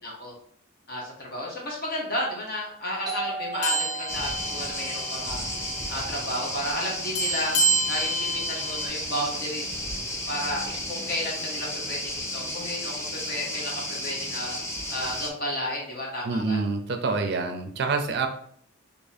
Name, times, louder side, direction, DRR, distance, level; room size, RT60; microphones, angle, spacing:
voice 1, 0.0-0.3 0.9-5.4 5.9-7.5 7.9-9.8 10.3-12.9 13.3-14.6 14.9-16.6, left 1 dB, 45° left, -3 dB, 0.9 m, -32 dB
Doorbell, 3.1-8.4, right 4 dB, 20° right, 0.8 m, -40 dB
sound 1, 3.6-5.3 5.6-5.8 7.2-8.9, right 2 dB, 85° left, 0.7 m, -28 dB
sound 2, 4.1-15.3, left 1 dB, 15° left, 0.5 m, -33 dB
voice 2, 16.2-18.3, right 4 dB, 55° right, 6 dB, 0.4 m, -26 dB
2.8 x 2.6 x 4.0 m, 0.63 s
head